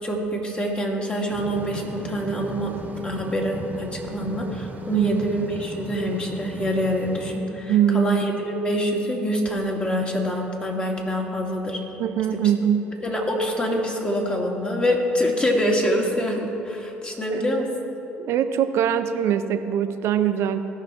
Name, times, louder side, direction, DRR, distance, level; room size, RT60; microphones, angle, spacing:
voice 1, 0.0-2.7 3.0-11.8 12.3-12.4 13.0-17.7, equal, 25° left, 0 dB, 2.3 m, -25 dB
sound 1, 1.3-7.4, right 3 dB, 35° right, 1.3 m, -37 dB
voice 2, 7.7-8.2 12.0-12.9 17.3-17.6 18.2-20.6, right 9 dB, 70° right, 9 dB, 0.7 m, -22 dB
17.5 x 5.9 x 4.4 m, 3.0 s
hypercardioid pair, 60°, 5 cm